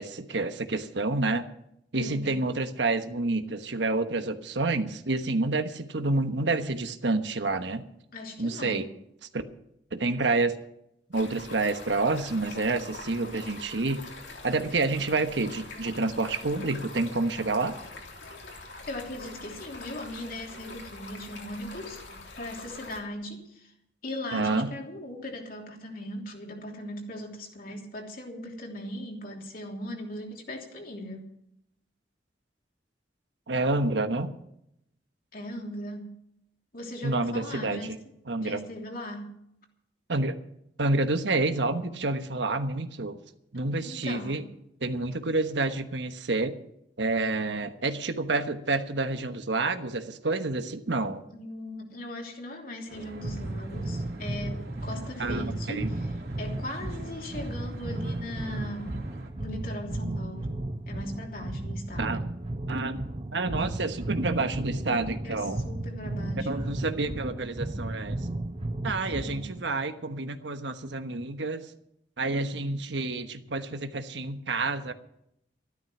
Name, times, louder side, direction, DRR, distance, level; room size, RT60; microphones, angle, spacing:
voice 1, 0.0-1.4 1.9-7.9 8.4-8.9 9.3-9.4 9.9-10.6 11.1-14.0 14.4-17.8 24.3-24.7 33.5-34.3 37.0-38.0 38.3-38.6 40.1-40.4 40.8-43.2 43.5-44.4 44.8-46.5 47.0-51.2 55.2-55.9 62.0-62.2 62.7-63.0 63.3-65.6 66.4-68.2 68.8-71.7 72.2-74.9, right 3 dB, 85° right, 8 dB, 1.2 m, -28 dB
voice 2, 1.9-2.4 8.1-8.8 18.9-23.7 24.0-31.3 35.3-36.1 36.7-37.9 38.4-39.3 43.8-44.4 51.3-56.1 56.4-59.1 59.4-60.5 60.9-62.0 65.2-66.7 69.1-69.5, left 1 dB, 55° left, 1 dB, 3.1 m, -39 dB
Stream, 11.1-23.0, left 3 dB, 80° left, 3.2 m, -44 dB
Traffic noise roadway noise, 52.9-59.3, right 1 dB, 65° right, 2.9 m, -47 dB
sound 1, 53.2-69.6, right 1 dB, 35° right, 0.8 m, -34 dB
13.5 x 12.0 x 6.1 m, 0.76 s
head